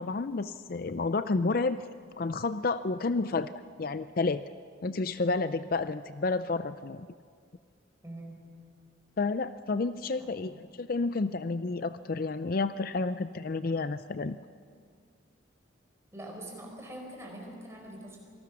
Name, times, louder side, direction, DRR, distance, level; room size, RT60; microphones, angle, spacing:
voice 1, 0.0-1.8 2.2-3.5 3.8-4.4 4.8-7.1 9.2-14.4, left 3 dB, 45° left, 12 dB, 0.5 m, -30 dB
voice 2, 8.0-8.5 10.2-10.6 16.1-18.2, right 1 dB, 15° right, 0 dB, 4.6 m, -44 dB
27.0 x 19.5 x 6.2 m, 2.1 s
head